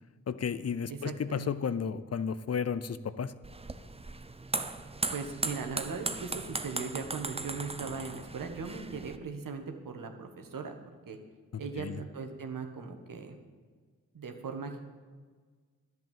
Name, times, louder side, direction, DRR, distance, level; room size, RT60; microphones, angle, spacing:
voice 1, 0.3-3.3 11.8-12.0, left 6 dB, 45° left, 14 dB, 0.6 m, -33 dB
voice 2, 0.9-1.5 5.1-10.7 11.1-11.2 11.6-13.4 14.1-14.8, right 5 dB, 65° right, 5 dB, 1.5 m, -39 dB
sound 1, 3.4-9.2, right 3 dB, 15° right, 0.8 m, -37 dB
11.0 x 7.9 x 7.5 m, 1.5 s
supercardioid pair, 40°, 35 cm